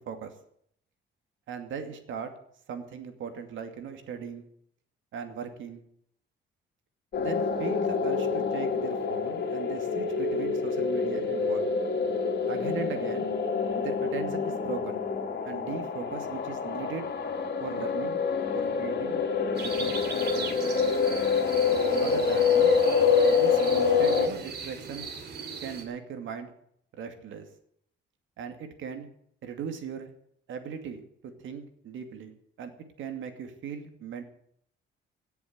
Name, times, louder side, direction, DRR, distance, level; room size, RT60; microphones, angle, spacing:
voice 1, 1.5-2.3 2.7-4.5 5.1-5.8 7.2-11.7 12.5-13.3 13.8-15.0 15.4-17.1 17.6-18.2 18.5-19.2 19.6-20.0 20.3-20.6 21.9-22.8 23.3-25.1 25.6-26.5 27.0-27.5 28.4-29.1 29.4-30.1 30.5-32.7 33.0-34.2, right 7 dB, 75° right, 7 dB, 2.4 m, -38 dB
sound 1, 7.1-24.3, left 5 dB, 60° left, 2.5 m, -26 dB
sound 2, 19.5-25.8, right 5 dB, 55° right, 2.9 m, -39 dB
16.5 x 7.2 x 9.6 m, 0.68 s
cardioid pair, 90°, 20 cm